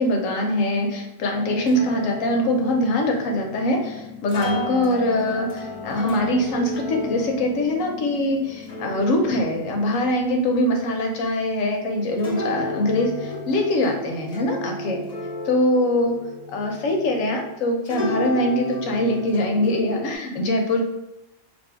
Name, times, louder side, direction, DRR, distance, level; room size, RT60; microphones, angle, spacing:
voice 1, 0.0-15.0 15.4-16.2 16.5-20.8, left 1 dB, 85° left, 2 dB, 1.1 m, -23 dB
sound 1, 1.3-17.5 17.9-20.1, left 2 dB, 40° left, 0.7 m, -33 dB
2.9 x 2.7 x 4.3 m, 0.91 s
omnidirectional pair, 1.3 m